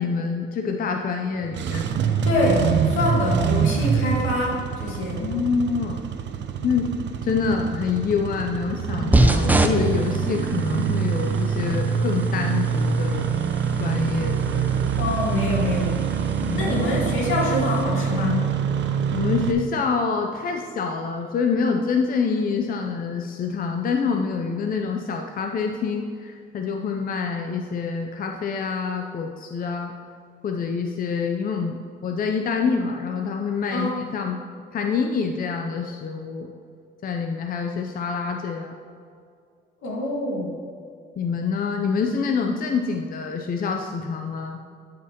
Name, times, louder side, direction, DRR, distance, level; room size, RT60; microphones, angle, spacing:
voice 1, 0.0-2.3 5.2-6.0 6.6-6.9 7.2-13.3 13.8-14.9 16.4-16.9 19.1-29.9 30.4-34.4 34.7-36.5 37.0-38.7 41.2-44.6, left 5 dB, 45° left, 3 dB, 0.6 m, -26 dB
Engine starting, 1.4-19.5, right 7 dB, 65° right, 0.6 m, -25 dB
voice 2, 2.3-5.2 15.0-15.9 16.5-18.5 33.7-34.0 39.8-40.6, left 1 dB, 80° left, -3 dB, 1.9 m, -25 dB
sound 1, 9.1-17.8, right 2 dB, 10° right, 0.5 m, -28 dB
12.0 x 5.1 x 2.9 m, 2.3 s
cardioid pair, 90°, 20 cm